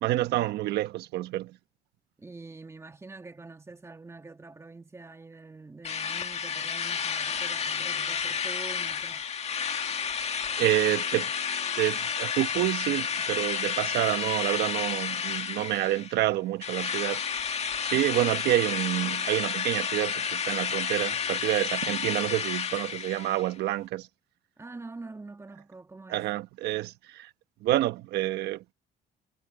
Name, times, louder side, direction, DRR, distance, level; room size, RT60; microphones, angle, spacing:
voice 1, 0.0-1.6 10.6-11.3 11.8-17.2 17.8-24.1 26.1-27.3 27.6-28.7, right 15 dB, 80° right, 1.2 m, -28 dB
voice 2, 2.2-9.3 24.6-26.3, right 3 dB, 15° right, 2.3 m, -45 dB
Drill, 5.9-16.2 16.6-23.5, left 6 dB, 40° left, 1.9 m, -31 dB
cardioid pair, 110°, 17 cm